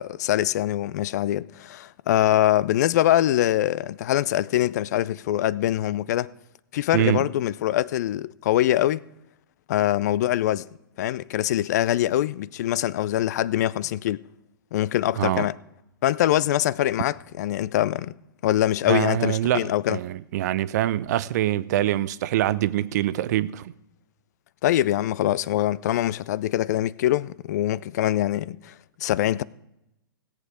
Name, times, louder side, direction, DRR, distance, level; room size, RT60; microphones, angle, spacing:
voice 1, 0.0-6.3 6.7-9.0 9.7-10.6 11.0-14.2 14.7-15.6 16.0-18.1 18.4-20.0 24.6-28.7 29.0-29.4, left 13 dB, 50° left, 0.4 m, -23 dB
voice 2, 6.9-7.2 15.2-15.5 18.9-23.7, right 13 dB, 50° right, 0.6 m, -24 dB
17.0 x 8.3 x 4.9 m
figure-of-eight pair, 115°, 12 cm